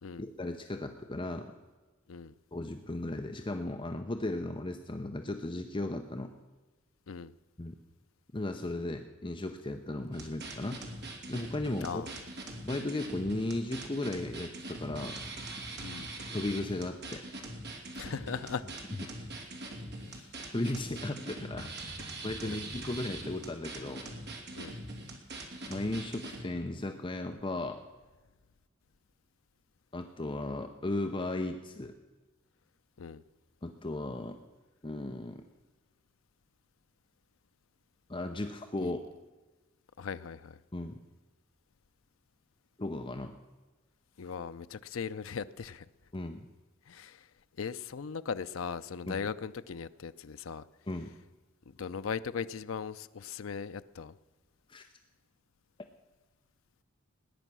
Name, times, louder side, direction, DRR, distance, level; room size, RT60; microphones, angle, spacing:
voice 1, 0.2-1.5 2.5-6.3 7.6-7.7 8.3-10.8 11.3-12.0 12.6-15.1 16.3-17.2 20.5-21.9 22.2-24.1 25.7-27.8 29.9-31.9 33.6-34.4 34.8-35.4 38.1-39.1 40.7-41.0 42.8-43.3 46.1-46.4 49.1-49.2 50.9-51.1 54.7-54.9, left 2 dB, 25° left, 6 dB, 0.8 m, -36 dB
sound 1, 10.1-26.4, right 2 dB, 55° right, 2.7 m, -42 dB
voice 2, 11.8-12.2 15.8-16.1 17.9-18.6 20.1-20.3 22.4-22.6 24.5-24.8 33.0-33.2 38.8-38.9 40.0-40.6 44.2-45.9 46.9-47.2 47.6-50.6 51.8-54.1, left 6 dB, 85° left, 12 dB, 0.5 m, -38 dB
19.0 x 10.0 x 6.2 m, 1.3 s
head